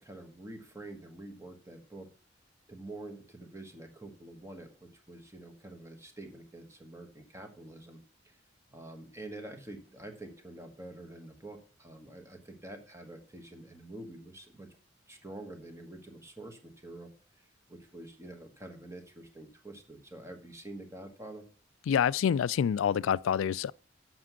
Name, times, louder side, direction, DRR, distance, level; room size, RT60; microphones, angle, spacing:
voice 1, 0.0-2.1 2.7-8.0 8.7-14.8 15.1-17.1 17.7-21.4, right 2 dB, 15° right, 1.3 m, -47 dB
voice 2, 21.9-23.7, left 8 dB, 90° left, 0.3 m, -27 dB
7.5 x 6.1 x 6.0 m
head